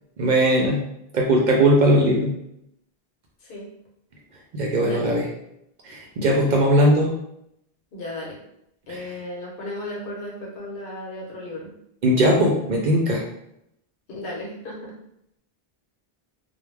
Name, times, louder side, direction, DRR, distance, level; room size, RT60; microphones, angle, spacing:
voice 1, 0.2-0.8 1.1-2.3 4.5-5.3 5.8-7.1 8.9-9.1 12.0-13.2, right 1 dB, 55° right, -1 dB, 0.6 m, -19 dB
voice 2, 7.9-8.4 8.9-11.7 14.1-14.9, left 1 dB, 60° left, -3 dB, 1.0 m, -35 dB
2.2 x 2.1 x 3.1 m, 0.78 s
omnidirectional pair, 1.0 m